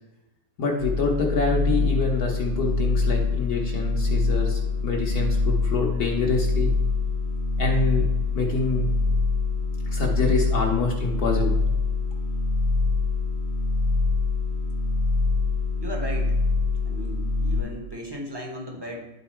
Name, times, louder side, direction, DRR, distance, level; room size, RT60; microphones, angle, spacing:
voice 1, 0.6-6.7 7.6-8.1 8.3-8.9 9.9-11.6, left 4 dB, 55° left, -1 dB, 1.3 m, -26 dB
sound 1, 0.8-17.6, left 3 dB, 85° right, 3.0 m, -24 dB
voice 2, 15.8-16.4 16.8-19.1, equal, 15° right, 0 dB, 0.8 m, -36 dB
11.0 x 4.0 x 4.4 m, 1.0 s
omnidirectional pair, 2.2 m